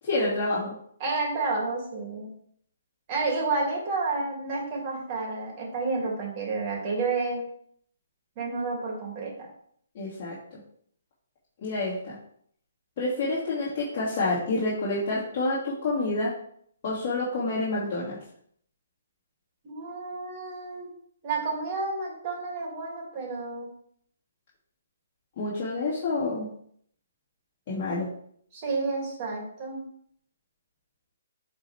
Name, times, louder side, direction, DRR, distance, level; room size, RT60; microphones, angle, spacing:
voice 1, 0.0-0.8 9.9-10.6 11.6-12.2 13.0-16.3 16.8-18.2 25.4-26.5 27.7-28.1, left 2 dB, 35° left, -10 dB, 2.8 m, -28 dB
voice 2, 1.0-2.3 3.1-7.5 8.4-9.3 19.6-20.9 21.2-23.7 28.5-29.8, right 3 dB, 30° right, -3 dB, 3.1 m, -30 dB
9.6 x 4.7 x 3.6 m, 0.65 s
hypercardioid pair, 155°, 0 cm